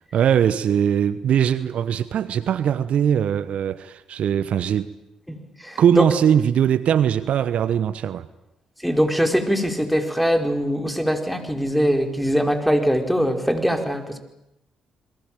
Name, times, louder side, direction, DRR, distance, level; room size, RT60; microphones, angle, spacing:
voice 1, 0.1-4.9 5.8-8.3, right 9 dB, 60° right, 15 dB, 1.0 m, -20 dB
voice 2, 5.3-6.0 8.8-14.2, equal, ahead, 5 dB, 4.8 m, -22 dB
28.5 x 22.5 x 9.0 m, 0.85 s
hypercardioid pair, 45°, 2 cm